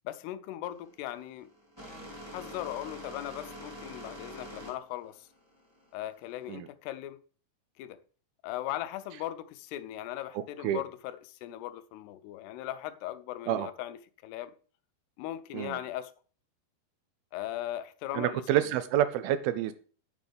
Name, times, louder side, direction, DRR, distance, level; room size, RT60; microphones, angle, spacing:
voice 1, 0.1-1.5 2.3-5.3 5.9-7.2 7.8-8.0 8.4-14.5 15.2-16.1 17.3-18.7, left 13 dB, 85° left, 2.7 m, -38 dB
sound 1, 0.7-6.5, equal, 10° right, 1.2 m, -46 dB
voice 2, 10.4-10.8 13.5-13.7 15.5-15.8 18.2-19.7, right 12 dB, 80° right, 2.3 m, -28 dB
9.6 x 9.2 x 3.4 m
omnidirectional pair, 4.7 m